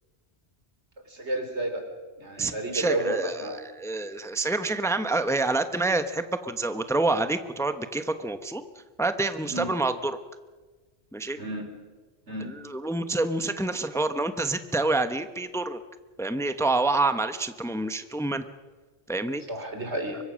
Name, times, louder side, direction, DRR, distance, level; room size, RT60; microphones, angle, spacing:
voice 1, 1.1-1.9 2.2-3.6 9.5-9.7 11.4-11.6 12.3-12.5 19.5-20.2, right 1 dB, 85° right, 5 dB, 4.1 m, -31 dB
voice 2, 2.4-8.6 9.0-10.2 11.1-11.4 12.4-15.8 16.2-18.4 19.1-19.4, right 2 dB, 5° left, 9 dB, 0.9 m, -27 dB
24.5 x 22.0 x 6.4 m, 1.3 s
omnidirectional pair, 1.1 m